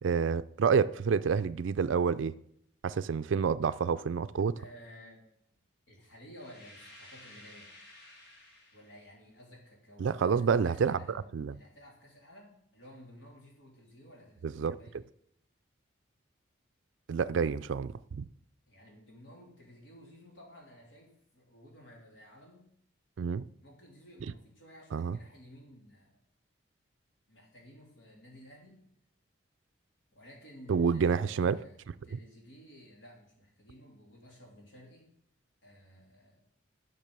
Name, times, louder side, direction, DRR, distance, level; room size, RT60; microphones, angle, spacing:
voice 1, 0.0-2.4 2.8-4.6 10.0-11.6 14.4-14.8 17.1-18.3 23.2-23.5 24.9-25.2 30.7-31.6 31.9-32.0, right 6 dB, 80° right, 0.4 m, -28 dB
voice 2, 4.3-5.2 5.9-7.7 8.7-15.0 18.7-22.7 23.6-26.2 27.3-28.8 30.1-35.1 35.6-36.5, equal, 75° left, 3.3 m, -54 dB
sound 1, 6.3-9.1, left 1 dB, 55° left, 2.7 m, -54 dB
10.5 x 6.6 x 6.8 m
head